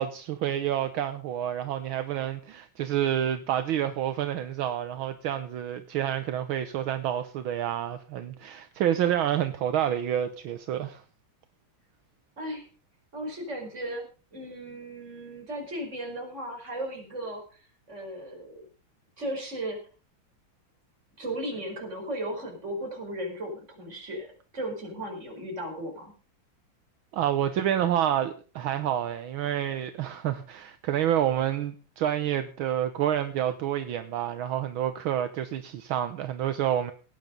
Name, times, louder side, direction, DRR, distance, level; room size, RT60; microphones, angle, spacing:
voice 1, 0.0-11.0 27.1-36.9, right 10 dB, 75° right, 1.7 m, -28 dB
voice 2, 12.4-12.7 13.1-14.1 14.3-18.7 19.2-19.8 21.2-24.3 24.5-26.1, right 1 dB, 35° right, 5.3 m, -36 dB
18.0 x 9.5 x 5.3 m
omnidirectional pair, 2.3 m